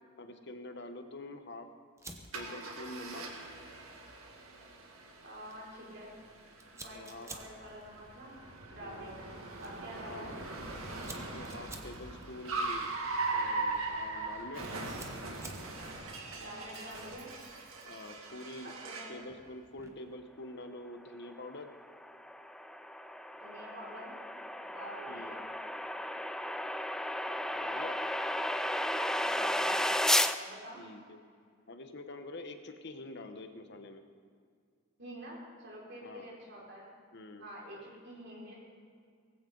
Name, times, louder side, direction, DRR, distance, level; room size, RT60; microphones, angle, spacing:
voice 1, 0.2-1.7 2.3-3.3 6.9-7.3 8.8-9.2 10.0-10.4 11.1-12.9 13.3-14.8 17.8-18.7 19.1-21.7 25.1-25.3 27.5-28.0 30.7-31.2 31.7-34.0 36.0-36.3 37.1-37.5, left 2 dB, 55° left, 7 dB, 1.0 m, -46 dB
Fire, 2.0-20.1, right 2 dB, 15° right, 1.1 m, -55 dB
Car, 2.3-19.2, right 3 dB, 90° right, 2.2 m, -40 dB
voice 2, 5.2-6.1 6.7-8.4 8.7-10.4 16.4-17.3 18.6-19.3 23.3-24.2 24.6-25.5 29.2-29.8 30.4-30.8 35.0-36.9 37.4-38.5, right 1 dB, 55° right, -4 dB, 5.3 m, -48 dB
sound 1, 21.7-30.4, left 1 dB, 5° left, 0.3 m, -33 dB
18.5 x 16.0 x 4.0 m, 2.1 s
head